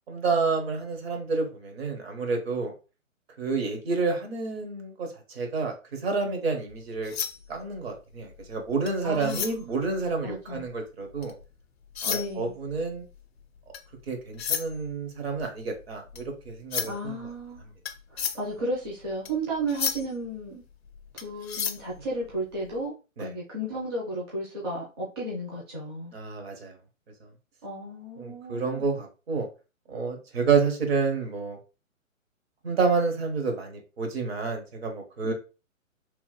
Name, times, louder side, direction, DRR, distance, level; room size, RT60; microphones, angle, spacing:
voice 1, 0.1-2.7 3.4-7.1 7.5-11.3 12.0-13.0 14.1-17.2 23.2-23.3 26.1-26.7 28.2-29.5 29.9-31.6 32.6-35.3, right 4 dB, 50° right, 1.0 m, -29 dB
sound 1, 6.7-11.5 11.8-22.8, left 7 dB, 50° left, 0.4 m, -35 dB
voice 2, 9.0-9.8 10.2-10.6 12.1-12.5 16.8-17.6 18.1-20.6 21.1-22.9 23.2-26.1 27.6-28.9 35.2-35.3, right 1 dB, 20° right, 0.5 m, -33 dB
3.0 x 2.1 x 3.1 m
figure-of-eight pair, 135°, 40 cm